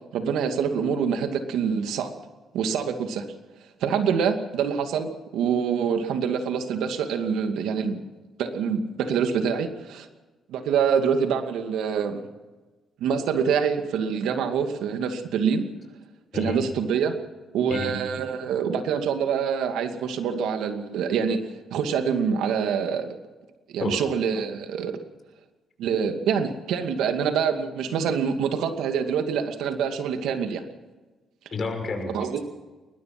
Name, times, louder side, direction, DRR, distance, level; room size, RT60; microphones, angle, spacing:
voice 1, 0.1-2.1 2.5-3.2 3.8-8.0 8.4-10.1 10.5-12.3 13.0-15.6 16.3-17.2 17.5-21.4 21.7-23.2 23.7-25.0 25.8-30.6 32.1-32.4, right 7 dB, 85° right, 6 dB, 2.4 m, -25 dB
voice 2, 31.5-32.2, left 3 dB, 40° left, 4 dB, 6.1 m, -30 dB
21.0 x 20.5 x 6.1 m, 1.2 s
cardioid pair, 90°, 0 cm